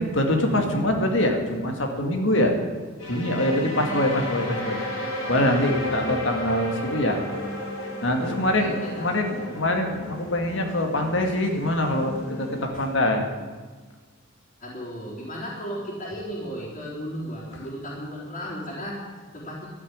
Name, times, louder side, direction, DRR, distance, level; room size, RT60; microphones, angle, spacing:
voice 1, 0.0-2.5 3.1-7.2 8.0-13.3, left 1 dB, 60° left, 3 dB, 2.1 m, -24 dB
sound 1, 3.0-12.7, left 1 dB, 80° left, 4.7 m, -33 dB
voice 2, 3.9-4.3 8.6-9.5 12.7-12.9 14.6-19.7, equal, 40° left, -7 dB, 3.8 m, -35 dB
13.5 x 8.4 x 9.7 m, 1.4 s
head